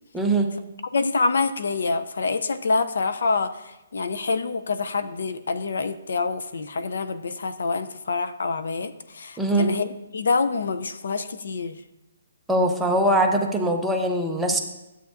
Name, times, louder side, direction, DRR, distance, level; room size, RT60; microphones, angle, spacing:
voice 1, 0.1-0.5 9.4-9.7 12.5-14.6, right 1 dB, 5° right, 1 dB, 0.5 m, -22 dB
voice 2, 0.9-11.8 14.5-14.6, left 4 dB, 70° left, 11 dB, 0.5 m, -26 dB
11.5 x 8.0 x 2.5 m, 0.96 s
hypercardioid pair, 170°, 0 cm